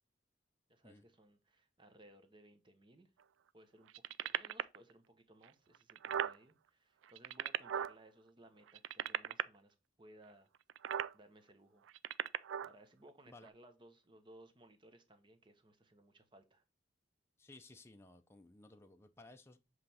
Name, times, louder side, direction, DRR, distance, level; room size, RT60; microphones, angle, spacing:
voice 1, 0.7-3.1 3.5-10.5 11.1-11.8 12.6-16.6, right 1 dB, 25° right, 0.9 m, -62 dB
sound 1, 3.9-4.8 5.4-5.5 5.7-6.4 7.0-7.9 8.7-9.4 10.7-11.1 11.9-12.7 13.5-13.6, right 9 dB, 85° right, 0.3 m, -37 dB
voice 2, 17.4-19.6, left 2 dB, 15° left, 0.5 m, -58 dB
7.5 x 3.2 x 4.2 m
head